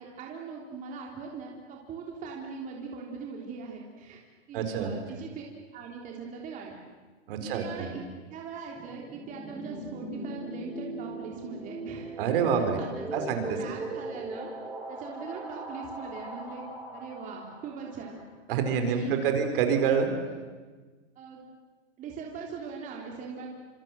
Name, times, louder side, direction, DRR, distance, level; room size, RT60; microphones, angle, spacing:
voice 1, 0.0-4.2 4.5-5.4 5.7-6.8 7.4-8.0 8.3-12.1 12.5-14.5 14.9-16.6 16.9-18.2 18.7-19.2 21.1-21.4 22.0-23.5, right 5 dB, 20° right, -1 dB, 3.3 m, -41 dB
voice 2, 4.5-4.9 7.3-7.9 12.2-12.8 13.1-13.4 18.5-20.1, right 7 dB, 50° right, 6 dB, 4.5 m, -26 dB
sound 1, 8.7-18.2, right 2 dB, 5° right, 3.3 m, -40 dB
26.5 x 26.0 x 7.6 m, 1.4 s
hypercardioid pair, 155°, 35 cm